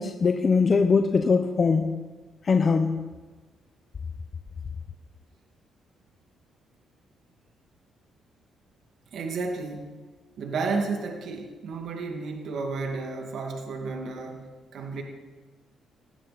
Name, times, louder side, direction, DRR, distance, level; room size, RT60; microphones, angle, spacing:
voice 1, 0.0-1.9 2.4-3.0, left 4 dB, 40° left, 6 dB, 1.0 m, -21 dB
voice 2, 9.1-9.9 10.4-15.0, right 4 dB, 65° right, 2 dB, 2.2 m, -32 dB
18.5 x 16.5 x 4.2 m, 1.3 s
cardioid pair, 90°, 0 cm